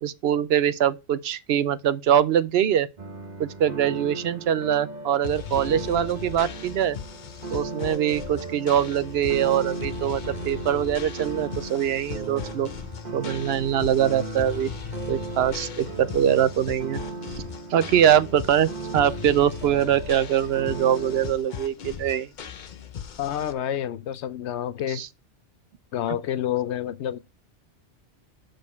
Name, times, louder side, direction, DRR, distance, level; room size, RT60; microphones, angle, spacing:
voice 1, 0.0-2.9 3.4-7.0 7.5-12.7 13.1-14.7 15.1-17.0 17.7-22.3 24.9-25.1, right 10 dB, 70° right, 0.8 m, -23 dB
sound 1, 3.0-21.3, right 2 dB, 40° right, 1.2 m, -37 dB
sound 2, 5.2-23.5, left 8 dB, 50° left, 0.7 m, -38 dB
voice 2, 23.2-25.0 25.9-27.2, left 10 dB, 80° left, 0.9 m, -28 dB
6.4 x 5.1 x 5.7 m
omnidirectional pair, 1.2 m